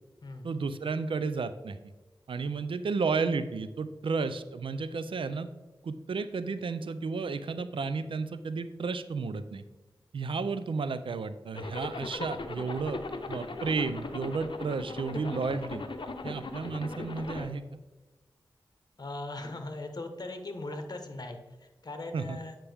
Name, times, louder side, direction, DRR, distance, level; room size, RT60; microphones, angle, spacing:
voice 1, 0.4-1.8 2.3-5.5 5.8-9.6 10.1-13.0 13.3-15.8 16.2-17.6 22.1-22.4, right 4 dB, 80° right, 12 dB, 0.4 m, -32 dB
Zipper (clothing), 11.5-17.5, left 3 dB, 70° left, 0.7 m, -39 dB
voice 2, 19.0-22.6, left 2 dB, 50° left, 5 dB, 1.2 m, -39 dB
8.5 x 5.8 x 3.4 m, 1.1 s
wide cardioid pair, 60°, 9 cm